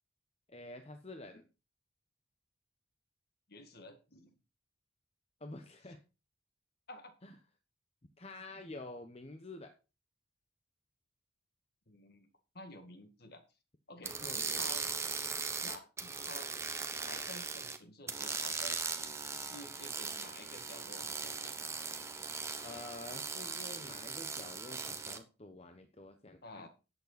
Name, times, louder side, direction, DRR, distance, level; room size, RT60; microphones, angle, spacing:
voice 1, 0.5-1.5 5.4-6.0 7.2-7.3 8.2-9.7 14.2-14.8 22.6-26.7, left 2 dB, 30° left, 6 dB, 0.9 m, -48 dB
voice 2, 3.5-4.4 6.9-7.1 11.9-12.3 12.5-13.4 13.9-14.8 15.6-16.5 17.0-18.8 19.3-21.5 26.4-26.7, left 2 dB, 50° left, 7 dB, 1.8 m, -51 dB
sound 1, 14.0-17.8 18.1-25.2, right 4 dB, 15° right, 0.9 m, -39 dB
11.0 x 8.4 x 4.1 m, 0.31 s
head